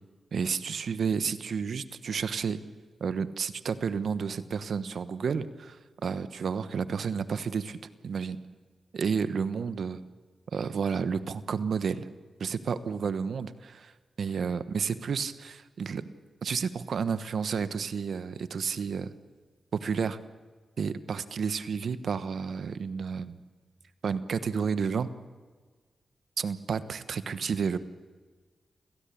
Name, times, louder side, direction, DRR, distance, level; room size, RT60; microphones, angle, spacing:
voice 1, 0.3-2.6 3.0-5.8 6.0-7.8 8.0-8.4 8.9-10.0 10.5-12.1 12.4-13.9 14.2-16.0 16.4-19.1 19.7-20.2 20.8-23.4 24.0-25.1 26.4-27.8, right 6 dB, 75° right, 13 dB, 1.2 m, -31 dB
28.0 x 17.0 x 8.6 m, 1.5 s
cardioid pair, 45°, 0 cm